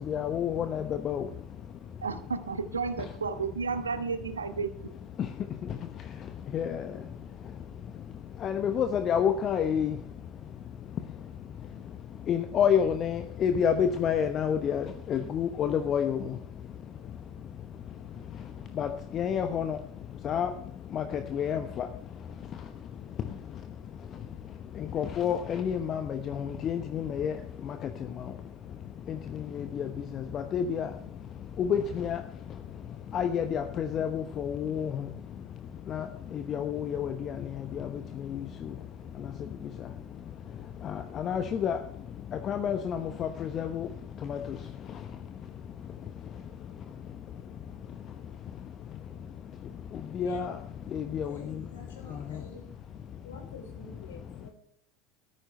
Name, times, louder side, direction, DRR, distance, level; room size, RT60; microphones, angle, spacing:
voice 1, 0.1-1.2 6.5-6.8 8.4-9.9 12.3-16.2 18.8-19.8 20.2-20.5 20.9-21.9 24.9-27.4 27.7-27.8 29.5-29.9 30.1-30.9 31.6-32.2 33.1-35.0 35.9-36.1 36.3-37.3 37.7-37.9 38.3-38.4 40.8-41.8 42.5-43.9 44.2-44.4 50.1-50.5 50.9-51.4, left 8 dB, 40° left, 8 dB, 1.0 m, -29 dB
voice 2, 2.0-4.7, right 5 dB, 85° right, 11 dB, 1.1 m, -32 dB
voice 3, 51.2-52.6 53.2-54.5, left 3 dB, 75° left, 2 dB, 4.9 m, -49 dB
14.0 x 13.5 x 3.2 m, 0.66 s
figure-of-eight pair, 75°, 0 cm